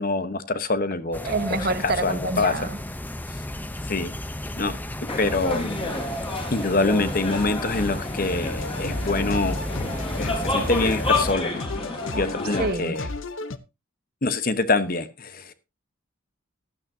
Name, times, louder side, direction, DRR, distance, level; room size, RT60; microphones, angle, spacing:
voice 1, 0.0-1.3 1.8-2.7 3.9-4.1 4.6-4.8 5.2-5.8 6.5-9.6 10.2-11.6 12.1-13.1 14.2-15.5, left 3 dB, 40° left, 12 dB, 1.0 m, -25 dB
sound 1, 1.1-11.3, left 1 dB, 10° left, 0.7 m, -33 dB
voice 2, 1.2-2.8 12.6-13.0, right 2 dB, 45° right, 10 dB, 1.3 m, -27 dB
sound 2, 5.1-12.7, left 3 dB, 25° left, 3.9 m, -30 dB
sound 3, 8.6-13.6, left 3 dB, 70° left, 0.8 m, -34 dB
15.0 x 12.0 x 2.7 m, 0.26 s
head